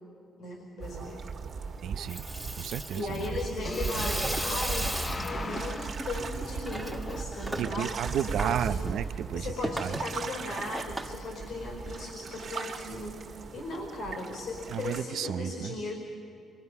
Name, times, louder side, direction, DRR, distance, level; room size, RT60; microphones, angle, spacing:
voice 1, 0.4-1.2 2.9-8.8 9.3-16.0, left 2 dB, 70° left, 1 dB, 4.8 m, -37 dB
sound 1, 0.8-15.0, right 5 dB, 55° right, 1.8 m, -38 dB
voice 2, 1.8-2.2 2.5-3.3 7.6-10.0 14.7-15.8, right 9 dB, 75° right, 11 dB, 0.7 m, -33 dB
Water tap faucet / Sink (filling or washing), 1.9-12.1, right 1 dB, 5° right, 1.5 m, -38 dB
sound 2, 3.6-7.6, left 3 dB, 35° left, 0.7 m, -38 dB
26.5 x 24.5 x 5.6 m, 2.4 s
cardioid pair, 90°, 0 cm